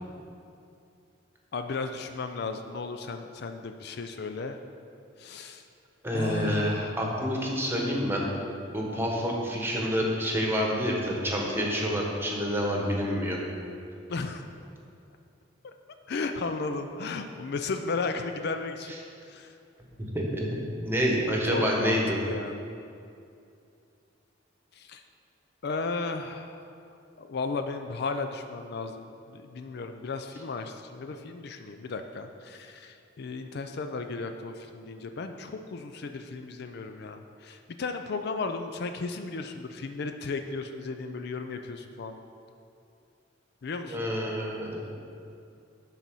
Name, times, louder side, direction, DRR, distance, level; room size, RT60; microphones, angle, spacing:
voice 1, 1.5-4.6 5.2-5.6 6.1-7.0 14.1-14.5 15.6-15.7 16.1-19.0 19.3-19.6 21.5-22.6 24.7-25.0 25.6-26.8 27.2-42.2 43.6-44.1, left 4 dB, 60° left, 7 dB, 0.4 m, -35 dB
voice 2, 6.0-8.2 8.7-13.4 20.0-22.2 43.8-44.9, equal, 10° right, -1 dB, 1.2 m, -28 dB
10.5 x 4.1 x 6.1 m, 2.5 s
head